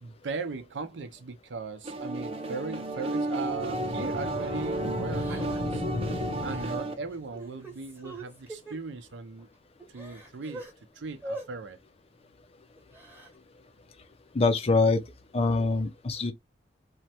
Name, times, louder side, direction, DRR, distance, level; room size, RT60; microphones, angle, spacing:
voice 1, 0.0-5.8 6.4-9.5 9.9-10.7 10.9-11.8, right 4 dB, 85° right, 0.5 m, -38 dB
sound 1, 1.8-6.9, right 2 dB, 35° right, 0.6 m, -33 dB
Crying sobbing, 3.3-3.4 3.9-4.1 5.1-5.8 6.4-6.7 7.1-8.8 9.4-9.5 9.8-10.7 11.2-11.5 12.8-13.3, right 1 dB, 10° right, 1.0 m, -43 dB
sound 2, 3.4-7.2, left 2 dB, 65° left, 0.7 m, -36 dB
voice 2, 14.3-15.0 15.3-16.3, left 3 dB, 35° left, 0.4 m, -24 dB
3.1 x 2.1 x 2.8 m
head